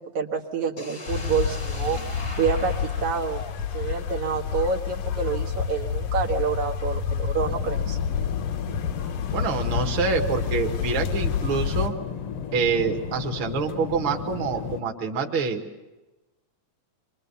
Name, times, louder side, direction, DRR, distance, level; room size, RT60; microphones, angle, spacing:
voice 1, 0.0-2.0 2.4-3.4 3.7-8.0, right 6 dB, 75° right, 0 dB, 2.8 m, -28 dB
sound 1, 0.8-4.7, left 2 dB, 25° left, 1.2 m, -39 dB
sound 2, 1.1-11.9, left 7 dB, 85° left, 2.7 m, -29 dB
sound 3, 7.4-14.8, left 7 dB, 60° left, 1.7 m, -34 dB
voice 2, 9.3-11.9 12.5-15.9, right 5 dB, 45° right, 1 dB, 2.3 m, -26 dB
27.0 x 23.5 x 6.9 m, 1.1 s
omnidirectional pair, 3.4 m